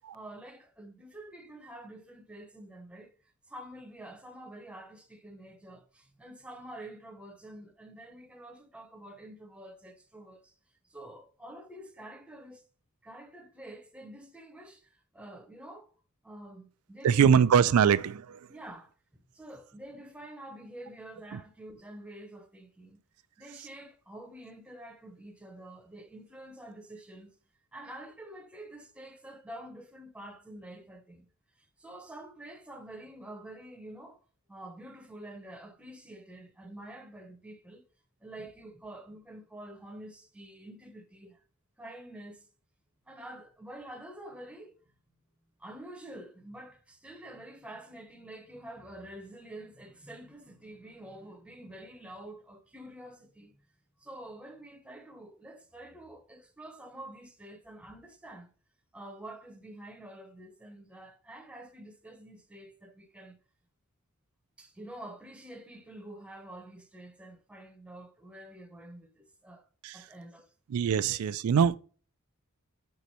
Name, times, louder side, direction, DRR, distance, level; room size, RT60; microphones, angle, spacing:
voice 1, 0.1-3.1 3.5-10.5 10.9-12.6 13.0-15.9 16.2-17.4 18.5-23.0 23.4-27.3 27.7-31.3 31.6-34.2 34.5-37.8 38.2-41.4 41.8-42.4 43.1-44.7 45.6-53.7 54.0-58.5 58.9-63.4 64.6-69.7 69.9-70.5 71.0-71.2, right 1 dB, 5° right, 0.8 m, -47 dB
voice 2, 17.0-18.5 21.3-21.4 69.8-70.0 70.7-71.7, right 7 dB, 80° right, 0.3 m, -23 dB
5.1 x 4.7 x 4.2 m
head